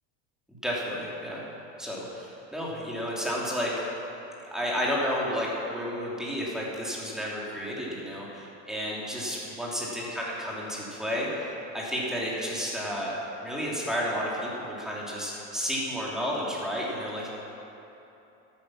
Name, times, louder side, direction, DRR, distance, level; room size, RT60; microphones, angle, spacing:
voice 1, 0.5-1.4 1.8-4.0 4.5-17.3, equal, ahead, -5 dB, 3.1 m, -32 dB
12.5 x 9.3 x 6.0 m, 3.0 s
supercardioid pair, 110°, 38 cm